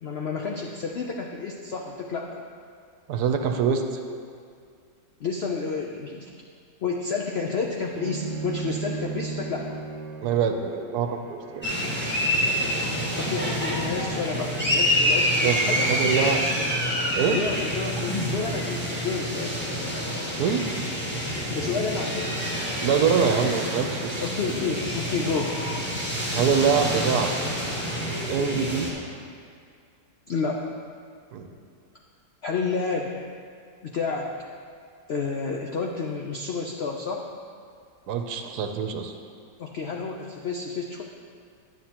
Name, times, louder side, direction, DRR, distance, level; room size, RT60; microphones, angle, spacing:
voice 1, 0.0-2.4 5.2-6.3 6.8-9.8 13.0-16.5 17.3-19.6 21.5-22.4 24.2-25.5 30.3-30.7 32.4-33.1 33.8-34.3 35.1-37.2 39.6-41.0, left 4 dB, 85° left, 0 dB, 0.5 m, -30 dB
voice 2, 3.1-3.8 10.2-11.7 15.4-16.4 17.2-17.4 20.4-20.7 22.8-24.2 26.3-27.3 28.2-28.9 31.3-31.5 38.1-39.1, right 6 dB, 70° right, 5 dB, 1.1 m, -24 dB
Bowed string instrument, 7.9-15.0, right 6 dB, 90° right, 1.3 m, -38 dB
sound 1, 11.6-28.9, equal, 5° left, 1.1 m, -27 dB
10.0 x 9.3 x 2.9 m, 2.2 s
omnidirectional pair, 1.8 m